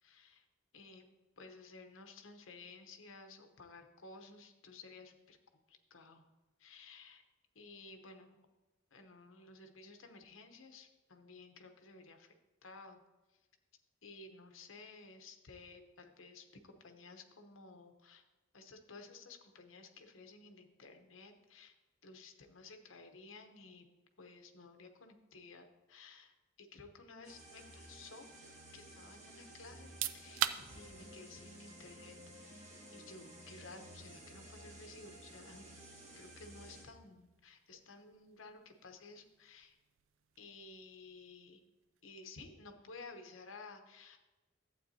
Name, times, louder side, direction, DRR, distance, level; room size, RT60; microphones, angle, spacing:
voice 1, 0.0-0.4 0.7-1.1 1.4-5.4 5.7-6.2 6.6-7.2 7.5-8.4 8.9-12.3 12.6-13.0 14.0-18.2 18.5-21.8 22.0-23.9 24.2-28.3 28.7-30.5 30.8-35.7 36.1-39.8 40.4-41.6 42.0-44.2, left 3 dB, 80° left, 5 dB, 0.9 m, -55 dB
sound 1, 27.2-36.8, right 1 dB, 35° right, 1.6 m, -54 dB
sound 2, 29.8-42.4, right 10 dB, 75° right, 0.4 m, -47 dB
12.0 x 8.1 x 2.7 m, 1.2 s
head